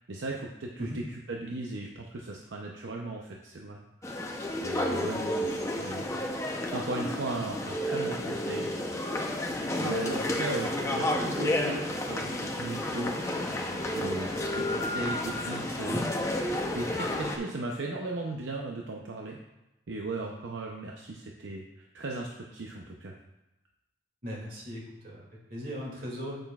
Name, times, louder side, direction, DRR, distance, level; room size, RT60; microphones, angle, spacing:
voice 1, 0.1-4.2 4.6-8.7 9.8-13.3 13.9-16.5 16.7-19.4 19.9-23.1, right 2 dB, 75° right, 0 dB, 0.7 m, -37 dB
sound 1, 4.0-17.4, left 1 dB, 15° left, 0.7 m, -31 dB
sound 2, 9.1-17.0, left 2 dB, 35° left, 1.6 m, -46 dB
voice 2, 24.2-26.4, equal, 50° right, -3 dB, 2.4 m, -39 dB
8.8 x 7.8 x 2.4 m, 0.95 s
head